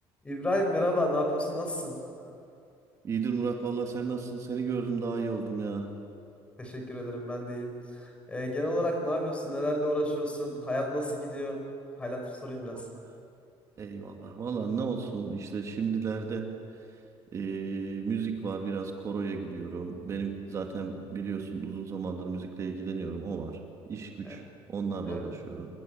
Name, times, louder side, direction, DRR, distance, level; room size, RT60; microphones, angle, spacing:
voice 1, 0.2-1.9 6.6-11.6 12.0-12.8 24.2-24.4 25.1-25.2, left 1 dB, 10° left, 3 dB, 5.0 m, -31 dB
voice 2, 3.0-5.9 12.9-13.0 13.8-16.5 17.3-23.6 23.9-24.4 24.7-25.7, right 5 dB, 30° right, 3 dB, 2.1 m, -33 dB
27.0 x 21.5 x 9.0 m, 2.5 s
cardioid pair, 175°, 10 cm